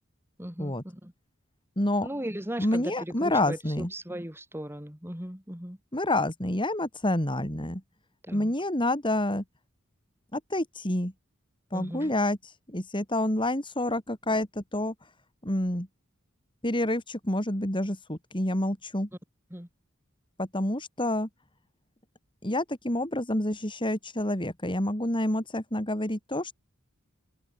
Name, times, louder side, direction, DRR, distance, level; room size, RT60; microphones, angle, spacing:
voice 1, 0.4-1.1 2.0-5.8 8.2-8.5 11.7-12.1 19.5-19.7, right 1 dB, 10° right, 4.1 m, -37 dB
voice 2, 1.8-2.1 2.6-3.9 5.9-7.8 8.3-9.4 10.3-11.1 11.7-14.9 15.4-15.9 16.6-19.1 20.4-21.3 22.4-26.6, left 1 dB, 25° left, 5.3 m, -28 dB
head